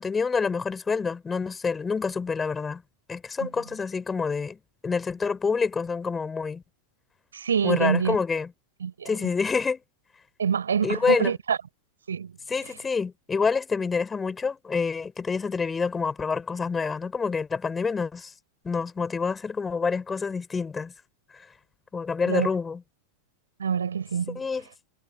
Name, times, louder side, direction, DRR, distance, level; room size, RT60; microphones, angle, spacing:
voice 1, 0.0-2.8 3.1-4.6 4.8-6.6 7.6-8.5 9.0-9.8 10.8-11.3 12.5-18.3 18.6-20.9 21.9-22.8 24.4-24.7, left 5 dB, 15° left, 4.0 m, -27 dB
voice 2, 7.3-8.2 8.8-9.3 10.4-11.6 12.1-12.3 22.3-22.5 23.6-24.4, right 7 dB, 70° right, 4.8 m, -26 dB
figure-of-eight pair, 90°, 0 cm